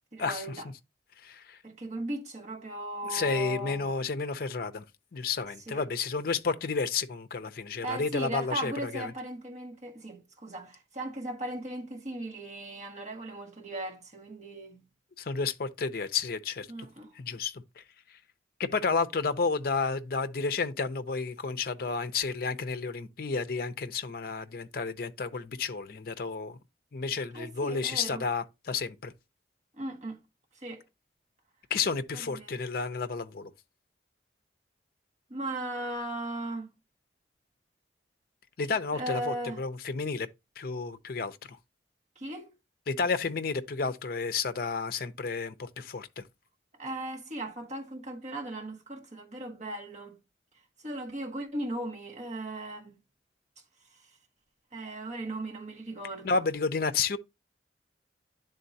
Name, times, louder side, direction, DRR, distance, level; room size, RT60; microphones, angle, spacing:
voice 1, 0.1-0.7 1.6-3.8 5.7-5.8 7.8-14.8 16.7-17.1 27.3-28.2 29.8-30.2 30.6-30.8 32.1-32.6 35.3-36.7 38.9-39.6 42.2-42.5 46.8-50.2 50.8-52.9 54.7-56.5, right 1 dB, 40° right, 1.3 m, -37 dB
voice 2, 1.2-1.6 3.0-4.8 5.1-9.1 15.2-16.7 17.2-17.8 18.6-26.6 26.9-29.1 31.7-33.5 38.6-40.3 40.6-41.4 42.9-46.2 56.2-57.2, left 4 dB, 50° left, 0.5 m, -31 dB
10.5 x 3.8 x 2.7 m
head